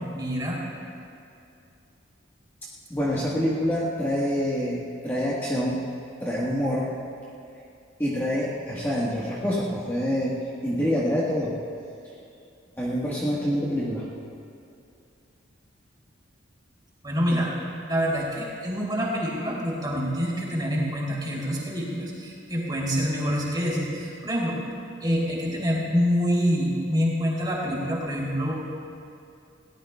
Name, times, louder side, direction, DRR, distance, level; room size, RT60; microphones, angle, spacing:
voice 1, 0.1-0.6 17.0-17.5 17.9-24.6 25.0-28.5, equal, 20° right, -5 dB, 3.2 m, -26 dB
voice 2, 2.9-5.9 6.2-6.9 8.0-10.3 10.6-11.6 12.8-14.1 17.3-17.4, equal, 10° left, -7 dB, 1.4 m, -26 dB
21.0 x 18.0 x 2.3 m, 2.6 s
head